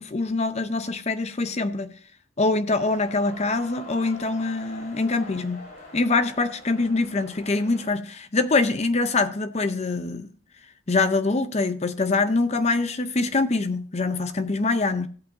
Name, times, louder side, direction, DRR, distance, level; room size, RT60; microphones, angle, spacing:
voice 1, 0.0-1.9 2.4-5.6 5.9-10.3 10.9-15.1, left 3 dB, 30° left, 0.6 m, -24 dB
sound 1, 2.7-7.9, left 2 dB, 50° left, 5.4 m, -44 dB
16.0 x 8.3 x 2.6 m
head